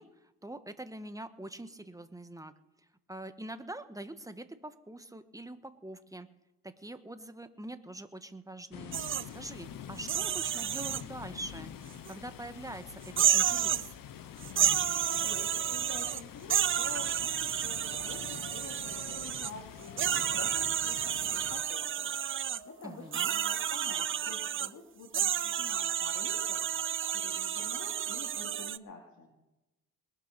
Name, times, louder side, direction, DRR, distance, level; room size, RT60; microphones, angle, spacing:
voice 1, 0.0-2.5 2.8-6.3 6.6-11.7 12.1-13.9 22.8-23.3, right 1 dB, 10° right, 10 dB, 1.3 m, -44 dB
sound 1, 8.7-21.6, left 9 dB, 85° left, 0.9 m, -46 dB
sound 2, 8.9-9.2 10.0-11.0 12.1-12.2 13.1-13.9 14.4-16.2 16.5-19.5 20.0-22.6 23.1-24.7 25.1-28.8, right 9 dB, 40° right, 0.4 m, -31 dB
sound 3, 13.6-14.2 14.6-16.4 17.1-24.3, left 2 dB, 35° left, 2.2 m, -56 dB
voice 2, 14.9-22.1 22.6-29.3, left 4 dB, 60° left, 1 dB, 2.7 m, -48 dB
21.5 x 7.2 x 6.8 m, 0.97 s
cardioid pair, 80°, 33 cm